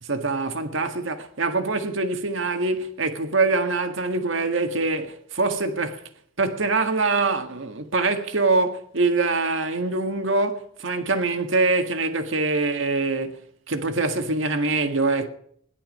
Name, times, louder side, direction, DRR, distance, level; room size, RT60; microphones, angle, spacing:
voice 1, 0.1-6.0 6.4-13.4 13.7-15.3, right 3 dB, 90° right, 1.7 m, -24 dB
17.5 x 11.5 x 5.3 m
head